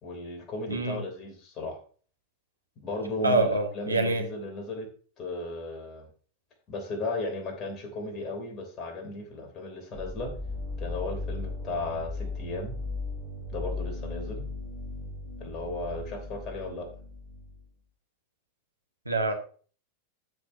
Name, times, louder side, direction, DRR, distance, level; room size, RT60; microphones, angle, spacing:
voice 1, 0.0-1.8 2.8-4.9 5.2-6.1 6.7-10.3 10.8-12.8 13.5-14.4 15.4-16.8, left 2 dB, 30° left, 3 dB, 3.3 m, -35 dB
voice 2, 0.7-1.0 3.2-4.2 19.0-19.3, right 2 dB, 85° right, 4 dB, 1.5 m, -25 dB
sound 1, 9.9-17.7, left 2 dB, 50° right, 3.9 m, -37 dB
12.5 x 6.7 x 2.8 m, 0.42 s
figure-of-eight pair, 90°, 0 cm